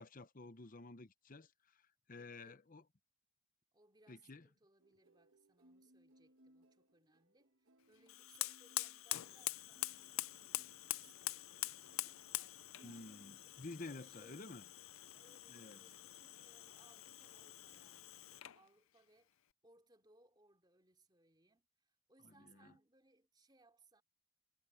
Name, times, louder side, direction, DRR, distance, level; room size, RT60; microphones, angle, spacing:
voice 1, 0.0-2.8 4.1-4.5 12.8-14.6 15.5-15.8 22.2-22.7, left 2 dB, 40° left, 0.9 m, -52 dB
voice 2, 2.2-2.6 3.7-10.0 10.3-14.7 15.1-19.3 19.6-24.0, right 2 dB, 20° right, 3.0 m, -70 dB
sound 1, 4.8-13.9 14.2-14.7, right 1 dB, 70° right, 1.3 m, -70 dB
Fire, 8.1-18.6, left 16 dB, 85° left, 0.6 m, -45 dB
head